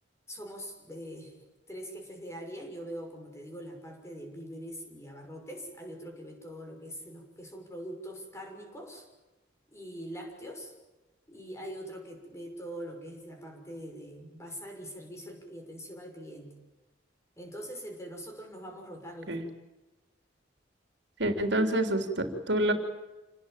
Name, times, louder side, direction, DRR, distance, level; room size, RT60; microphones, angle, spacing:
voice 1, 0.3-1.4 1.7-9.1 9.7-10.7 11.3-16.5 17.4-19.4, equal, 15° left, 2 dB, 6.2 m, -43 dB
voice 2, 21.2-22.7, right 1 dB, 65° right, 6 dB, 3.3 m, -27 dB
28.0 x 19.5 x 9.1 m, 1.1 s
head